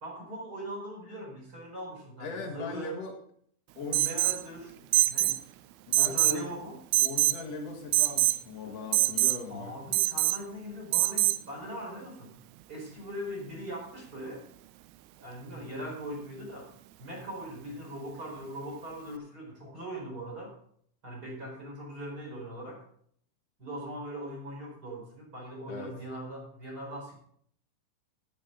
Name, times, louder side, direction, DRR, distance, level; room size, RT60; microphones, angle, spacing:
voice 1, 0.0-3.0 3.8-5.4 5.9-6.8 9.5-12.3 12.7-14.4 15.2-16.7 17.0-20.5 21.0-22.8 23.6-27.1, equal, 20° right, -1 dB, 4.3 m, -40 dB
voice 2, 2.2-3.1 3.7-4.3 5.9-6.5 7.0-9.7 25.7-25.9, left 4 dB, 85° left, 1 dB, 1.4 m, -39 dB
Alarm, 3.9-4.4 4.9-5.4 5.9-6.4 6.9-7.4 7.9-8.4 8.9-9.4 9.9-10.4 10.9-11.4, right 18 dB, 80° right, 2.8 m, -24 dB
13.5 x 10.5 x 3.8 m, 0.64 s
omnidirectional pair, 5.6 m